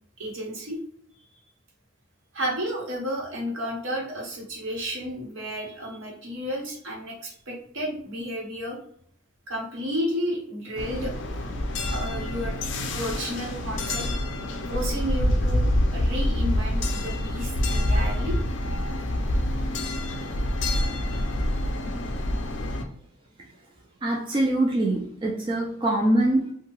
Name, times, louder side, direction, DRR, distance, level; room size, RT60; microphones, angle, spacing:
voice 1, 0.2-0.8 2.3-8.8 9.5-11.4 11.9-12.6 12.9-14.1 14.7-18.4, equal, 70° right, -2 dB, 1.0 m, -32 dB
sound 1, 10.8-22.8, left 1 dB, 60° left, 0.4 m, -26 dB
voice 2, 24.0-26.5, right 1 dB, 25° right, -2 dB, 0.3 m, -24 dB
2.7 x 2.2 x 2.9 m, 0.65 s
head